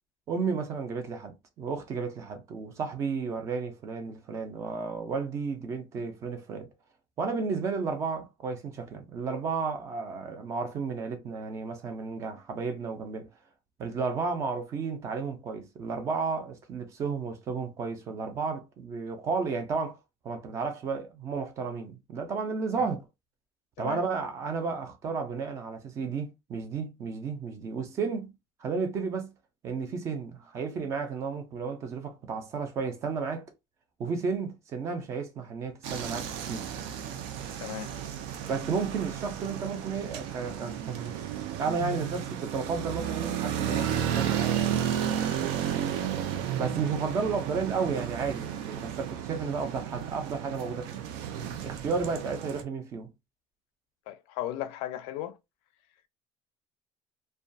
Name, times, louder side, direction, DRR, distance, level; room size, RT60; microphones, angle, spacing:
voice 1, 0.3-6.7 7.2-13.3 13.8-20.0 20.2-23.0 23.8-28.3 28.6-29.3 29.6-33.5 34.0-36.7 38.5-41.1 41.6-44.9 46.6-51.0 51.6-53.1, right 5 dB, 30° right, 0.5 m, -33 dB
sound 1, 35.8-52.6, right 9 dB, 85° right, 0.4 m, -33 dB
voice 2, 37.6-37.9 45.9-46.1 52.2-52.3 54.1-55.4, left 12 dB, 80° left, 0.4 m, -36 dB
2.3 x 2.2 x 2.6 m
cardioid pair, 180°, 10 cm